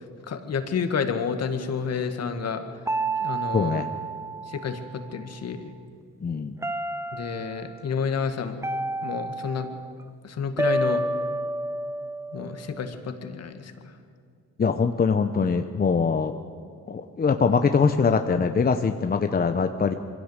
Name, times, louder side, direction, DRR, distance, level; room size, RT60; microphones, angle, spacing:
voice 1, 0.3-2.6 3.2-3.8 4.5-5.7 7.1-8.6 9.0-9.7 10.2-11.0 12.3-13.9, left 6 dB, 55° left, 7 dB, 2.0 m, -30 dB
sound 1, 2.9-5.2 6.6-7.6 8.6-9.9 10.6-12.9, right 2 dB, 10° right, 1.1 m, -30 dB
voice 2, 3.5-3.9 6.2-6.5 14.6-16.4 16.9-19.9, left 5 dB, 30° left, 7 dB, 0.9 m, -23 dB
23.0 x 16.0 x 8.2 m, 2.3 s
cardioid pair, 90°, 30 cm